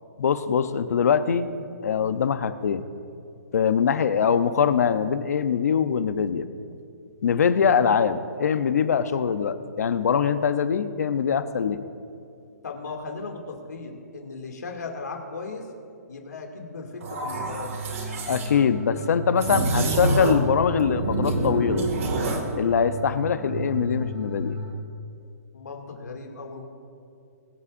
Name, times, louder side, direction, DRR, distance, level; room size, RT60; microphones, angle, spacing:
voice 1, 0.2-1.5 1.8-2.8 3.5-6.4 7.2-11.8 18.3-21.9 22.5-24.6, left 7 dB, 65° left, 11 dB, 0.8 m, -23 dB
voice 2, 12.6-15.7 16.1-17.7 25.5-26.6, left 4 dB, 90° left, 1 dB, 2.4 m, -37 dB
sound 1, 17.0-18.5 19.4-20.5 20.8-22.5, right 2 dB, 55° right, 2.0 m, -27 dB
sound 2, 17.3-24.7, right 2 dB, 20° right, 1.0 m, -35 dB
23.0 x 8.4 x 2.6 m, 2.6 s
hypercardioid pair, 165°, 9 cm